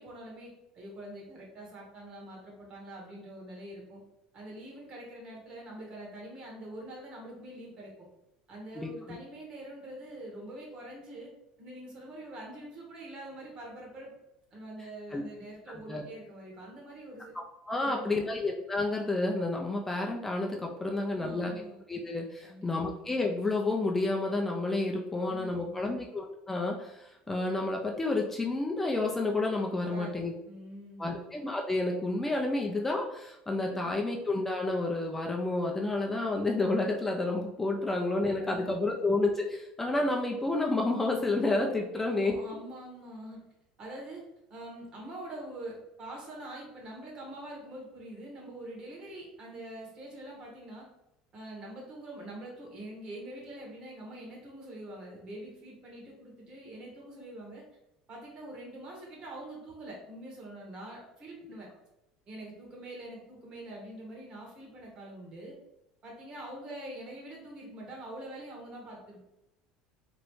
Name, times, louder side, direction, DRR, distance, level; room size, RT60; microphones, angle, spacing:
voice 1, 0.0-4.0 4.3-7.9 8.5-11.3 11.6-14.1 14.5-17.3 17.8-18.1 20.9-21.8 22.4-22.7 25.2-25.8 29.8-31.1 38.4-38.7 39.0-39.1 41.9-43.4 43.8-44.2 44.5-50.9 51.3-57.6 58.1-61.7 62.3-65.5 66.0-69.2, right 1 dB, 45° right, -1 dB, 1.3 m, -45 dB
voice 2, 8.7-9.2 15.1-15.2 15.9-16.0 17.7-21.5 21.9-30.3 31.0-42.4, left 2 dB, 10° left, 0 dB, 0.4 m, -30 dB
3.1 x 2.4 x 3.1 m, 0.90 s
supercardioid pair, 115°, 2 cm